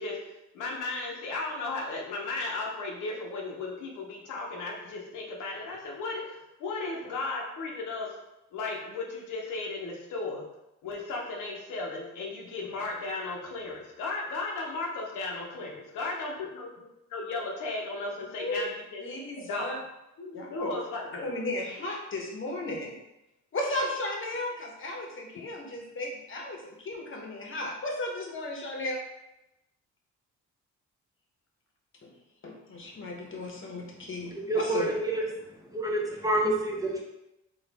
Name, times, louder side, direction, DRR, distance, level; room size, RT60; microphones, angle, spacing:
voice 1, 0.0-8.2 8.5-10.4 10.8-16.7 17.1-19.0 19.4-19.7 20.2-21.3, left 3 dB, 85° left, -1 dB, 0.9 m, -35 dB
voice 2, 18.4-18.7 19.0-19.8 20.3-20.7 21.2-22.9 23.5-29.0 32.0-32.1 32.4-34.9, left 1 dB, 40° left, 0 dB, 1.0 m, -35 dB
voice 3, 34.3-35.3 35.7-37.0, right 1 dB, 10° right, -2 dB, 0.9 m, -28 dB
4.1 x 2.5 x 3.4 m, 0.92 s
cardioid pair, 90°, 30 cm